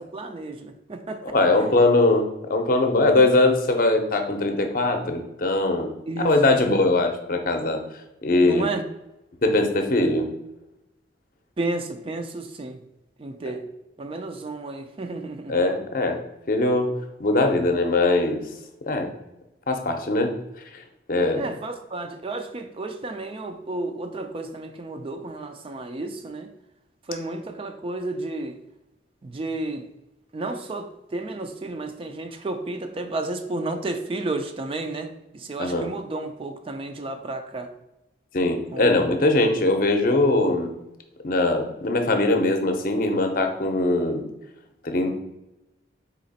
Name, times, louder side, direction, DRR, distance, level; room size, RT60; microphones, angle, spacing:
voice 1, 0.0-1.2 6.1-6.7 8.4-8.8 11.6-12.8 13.2-13.7 14.0-15.6 21.3-26.5 27.1-28.6 29.2-29.9 30.3-37.7 38.7-38.9, right 2 dB, 30° right, 6 dB, 0.4 m, -32 dB
voice 2, 1.3-5.9 6.2-7.8 8.2-8.6 9.4-10.3 13.5-13.6 15.5-16.2 16.5-16.9 17.2-18.4 18.9-19.1 19.7-20.4 21.1-21.5 35.6-35.9 38.3-40.7 41.2-44.2 44.8-45.2, left 2 dB, 50° left, 5 dB, 0.6 m, -21 dB
4.1 x 2.9 x 4.1 m, 0.93 s
head